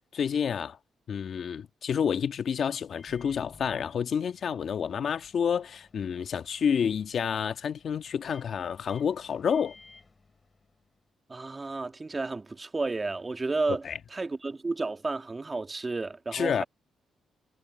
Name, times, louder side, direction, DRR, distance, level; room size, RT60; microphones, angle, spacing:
voice 1, 0.2-0.8 1.1-9.7 13.8-13.9 16.3-16.6, left 7 dB, 60° left, 1.5 m, -29 dB
Microwave oven, 2.9-11.0, left 4 dB, 30° left, 6.1 m, -57 dB
voice 2, 11.3-16.6, right 3 dB, 25° right, 1.7 m, -32 dB
cardioid pair, 75°, 0 cm